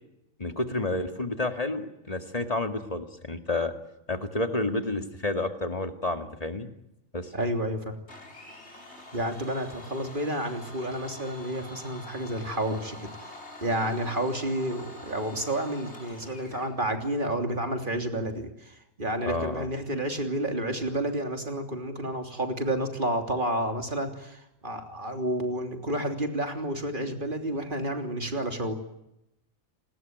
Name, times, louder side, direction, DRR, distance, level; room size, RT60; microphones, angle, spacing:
voice 1, 0.4-3.7 4.1-6.7 7.1-7.3 19.3-19.7, left 2 dB, 30° left, 7 dB, 2.2 m, -30 dB
voice 2, 7.3-8.0 9.1-13.0 13.2-13.3 13.6-28.7, right 1 dB, 40° right, 5 dB, 3.4 m, -30 dB
Domestic sounds home sounds, 8.1-16.7, left 1 dB, 55° left, 5.0 m, -46 dB
29.5 x 20.0 x 9.4 m, 0.86 s
omnidirectional pair, 1.4 m